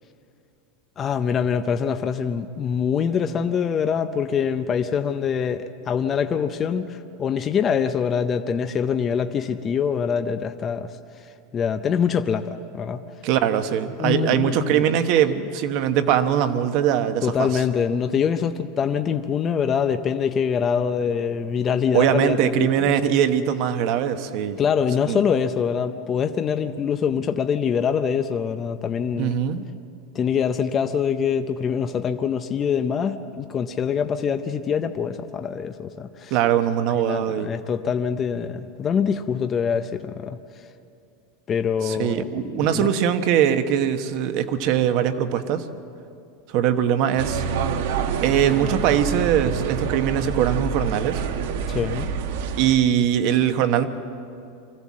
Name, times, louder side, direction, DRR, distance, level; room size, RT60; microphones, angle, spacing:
voice 1, 1.0-10.9 11.5-13.0 14.0-14.8 17.2-22.7 24.6-29.4 30.1-36.4 36.9-40.4 41.5-42.9 51.7-52.1, left 7 dB, 20° left, 8 dB, 0.6 m, -24 dB
voice 2, 13.2-17.5 21.9-24.6 25.1-25.2 29.2-29.6 36.3-37.5 41.8-45.6 46.5-47.4 48.2-51.2 52.6-53.9, right 9 dB, 45° right, 9 dB, 1.1 m, -21 dB
sound 1, 47.2-52.8, right 6 dB, 65° right, 1.2 m, -27 dB
24.0 x 15.5 x 7.4 m, 2.5 s
supercardioid pair, 160°, 0 cm